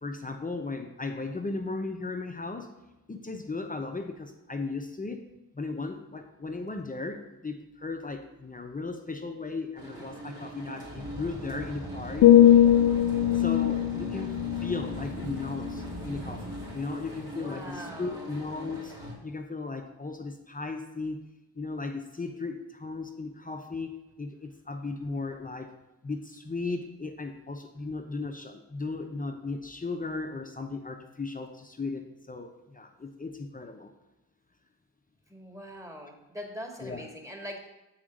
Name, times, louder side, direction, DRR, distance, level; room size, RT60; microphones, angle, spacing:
voice 1, 0.0-2.7 3.1-5.2 5.5-12.3 13.3-19.0 19.2-21.2 21.5-25.7 26.0-33.9 36.8-37.1, left 3 dB, 20° left, 5 dB, 0.9 m, -36 dB
sound 1, 9.8-19.1, right 1 dB, 50° right, 2.9 m, -40 dB
sound 2, 12.2-16.2 16.6-16.9, left 11 dB, 50° left, 0.5 m, -22 dB
voice 2, 17.3-18.3 35.3-37.7, equal, 10° right, 2 dB, 2.1 m, -42 dB
7.2 x 4.8 x 5.3 m, 0.99 s
hypercardioid pair, 40°, 39 cm